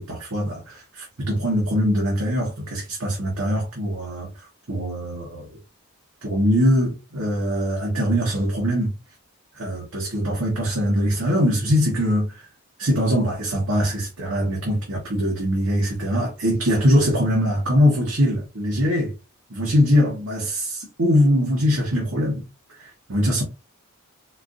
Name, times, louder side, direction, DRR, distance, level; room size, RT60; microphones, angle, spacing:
voice 1, 0.0-5.5 6.2-9.0 9.5-12.5 12.8-19.1 19.5-22.4 22.7-23.4, equal, 70° right, 1.1 m, -22 dB
4.3 x 2.4 x 2.5 m
head